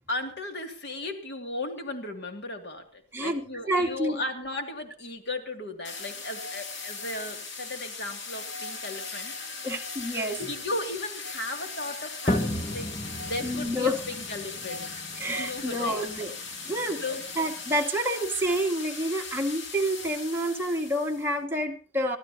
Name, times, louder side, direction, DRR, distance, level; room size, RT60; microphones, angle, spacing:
voice 1, 0.1-9.7 10.1-14.9 15.3-16.0 16.7-17.2, left 2 dB, 65° left, 4 dB, 2.7 m, -36 dB
voice 2, 3.1-4.2 9.6-10.4 13.4-14.0 15.2-16.3 16.6-17.0 17.4-22.2, right 1 dB, 10° right, 0 dB, 2.0 m, -28 dB
sound 1, 5.8-21.3, left 4 dB, 85° left, 2.6 m, -39 dB
sound 2, 12.3-17.7, left 1 dB, 25° left, 1.3 m, -34 dB
24.5 x 14.5 x 2.9 m, 0.34 s
head